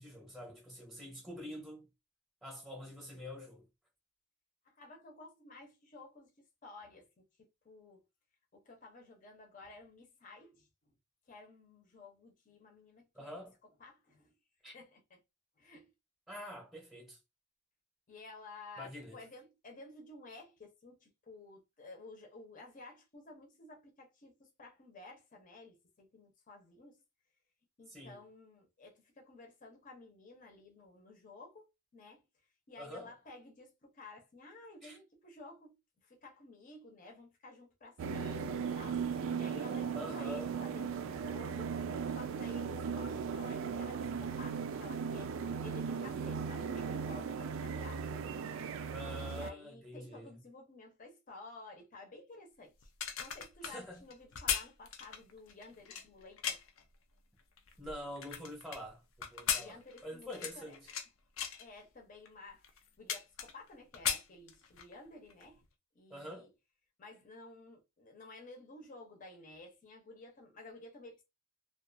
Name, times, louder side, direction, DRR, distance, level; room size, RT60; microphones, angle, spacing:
voice 1, 0.0-1.9 2.4-3.7 13.1-13.5 14.6-14.7 16.3-17.2 18.8-19.2 27.9-28.2 32.8-33.1 34.8-35.0 39.9-40.5 48.9-50.4 53.6-54.0 57.8-59.8 60.0-60.9 66.1-66.5, equal, ahead, 0.8 m, -46 dB
voice 2, 4.6-8.0 8.5-10.9 11.3-13.4 13.8-14.3 14.7-15.2 15.6-15.9 18.1-27.0 27.8-31.7 31.9-32.2 32.7-41.7 42.1-48.1 49.3-52.9 53.2-56.6 59.5-60.8 61.6-65.6 65.9-66.5 67.0-71.2, left 2 dB, 40° left, 0.7 m, -53 dB
sound 1, 38.0-49.5, right 6 dB, 70° right, 0.3 m, -37 dB
sound 2, 52.8-56.8 57.4-58.8 59.2-61.1 61.4-61.7 62.3-62.4 62.6-63.7 63.9-64.9 65.3-65.5, left 8 dB, 85° left, 0.5 m, -37 dB
2.4 x 2.3 x 2.5 m
head